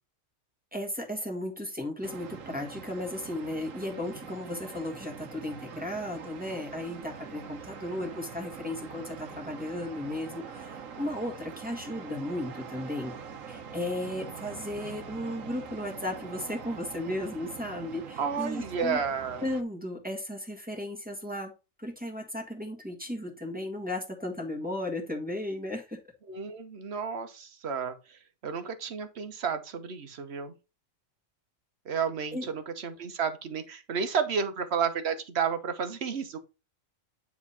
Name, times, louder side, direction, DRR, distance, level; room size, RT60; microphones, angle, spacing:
voice 1, 0.7-13.1 13.5-19.0 19.4-21.5 21.8-26.0 32.3-32.5, left 1 dB, 5° right, 1.6 m, -35 dB
sound 1, 2.0-19.6, right 6 dB, 75° right, 1.3 m, -44 dB
voice 2, 18.2-19.4 26.3-30.5 31.9-36.4, right 6 dB, 55° right, 1.2 m, -32 dB
9.5 x 3.6 x 4.2 m
omnidirectional pair, 1.4 m